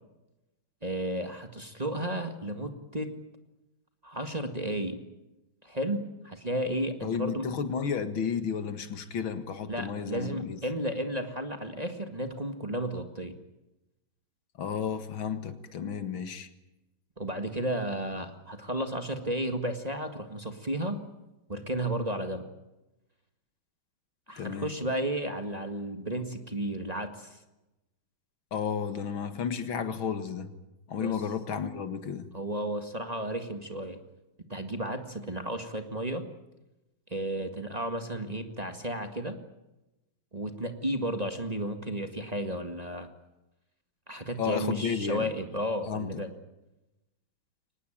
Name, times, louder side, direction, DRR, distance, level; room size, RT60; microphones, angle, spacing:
voice 1, 0.8-3.1 4.0-5.0 5.6-7.5 9.7-13.3 17.2-21.0 21.5-22.4 24.3-27.4 31.0-31.2 32.3-34.0 34.5-36.3 37.1-39.4 40.3-43.1 44.1-46.3, right 1 dB, 20° right, 7 dB, 1.8 m, -33 dB
voice 2, 7.0-10.6 14.6-16.5 24.4-24.7 28.5-30.5 30.9-32.3 44.4-45.3 45.8-46.2, left 7 dB, 80° left, 10 dB, 2.5 m, -32 dB
24.0 x 19.5 x 8.9 m, 0.98 s
omnidirectional pair, 2.2 m